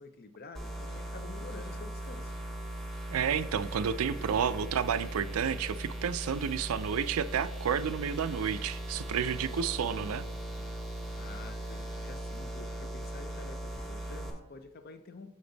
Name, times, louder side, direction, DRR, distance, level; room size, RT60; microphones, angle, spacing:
voice 1, 0.0-2.3 11.1-15.4, left 3 dB, 45° left, 9 dB, 0.6 m, -49 dB
sound 1, 0.6-14.3, right 1 dB, ahead, 1.0 m, -39 dB
voice 2, 3.1-10.2, right 7 dB, 90° right, 14 dB, 0.4 m, -31 dB
6.9 x 5.1 x 4.0 m, 0.97 s
head